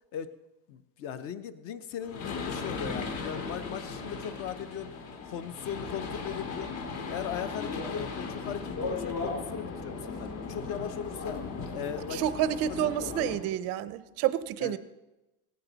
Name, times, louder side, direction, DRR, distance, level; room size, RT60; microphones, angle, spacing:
voice 1, 0.7-4.9 5.2-6.8 7.1-11.4 11.7-12.2 12.7-13.4 14.6-14.8, left 8 dB, 35° left, 13 dB, 0.6 m, -38 dB
sound 1, 2.0-13.4, left 4 dB, 60° left, 2.5 m, -37 dB
voice 2, 12.1-14.8, right 11 dB, 40° right, 15 dB, 0.5 m, -29 dB
16.5 x 15.0 x 4.0 m, 1.0 s
cardioid pair, 175°, 39 cm